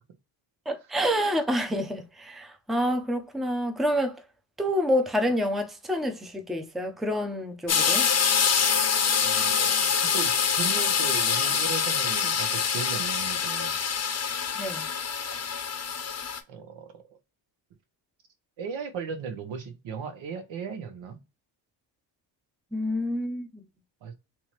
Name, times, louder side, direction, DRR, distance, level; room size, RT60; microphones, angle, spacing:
voice 1, 0.7-4.2 4.6-8.1 14.5-14.9 22.7-23.5, equal, ahead, 0.7 m, -28 dB
sound 1, 7.7-16.4, left 6 dB, 35° left, 0.9 m, -25 dB
voice 2, 9.2-13.8 15.3-15.5 16.5-17.0 18.6-21.2 24.0-24.1, right 6 dB, 65° right, 1.1 m, -37 dB
3.5 x 3.0 x 3.0 m
cardioid pair, 90°, 48 cm